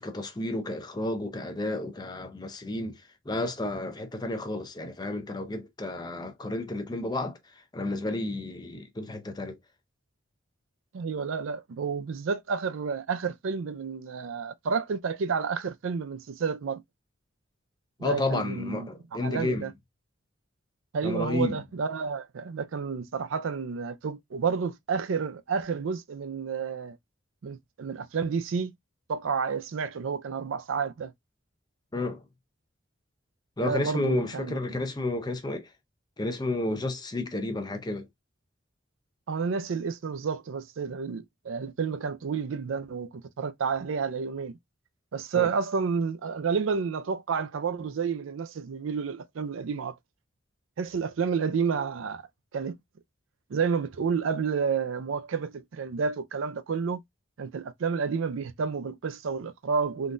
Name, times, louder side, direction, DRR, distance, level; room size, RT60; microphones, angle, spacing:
voice 1, 0.0-9.6 18.0-19.7 21.0-21.6 31.9-32.2 33.6-35.7 36.2-38.1 45.4-45.5, left 2 dB, 20° left, 0.5 m, -31 dB
voice 2, 10.9-16.8 18.0-18.9 19.2-19.7 20.9-27.0 27.4-28.8 29.1-31.1 33.6-34.7 39.3-44.6 45.1-49.9 50.8-52.2 52.5-52.7 53.5-57.0 57.4-60.1, right 5 dB, 80° right, 0.4 m, -30 dB
3.7 x 2.3 x 2.6 m
head